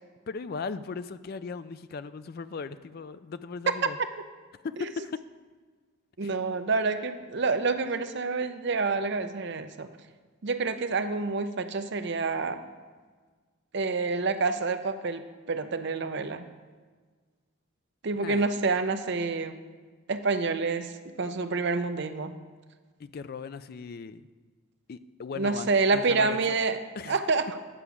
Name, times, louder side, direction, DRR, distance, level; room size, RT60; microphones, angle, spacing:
voice 1, 0.3-4.0 4.6-5.2 6.2-6.3 18.2-18.5 23.0-24.3 24.9-26.6 27.0-27.2, left 5 dB, 45° left, 13 dB, 0.3 m, -38 dB
voice 2, 6.2-9.9 10.4-12.6 13.7-16.4 18.0-19.6 20.1-22.3 25.4-26.8 27.1-27.6, right 4 dB, 55° right, 9 dB, 0.6 m, -28 dB
9.9 x 4.9 x 7.0 m, 1.5 s
head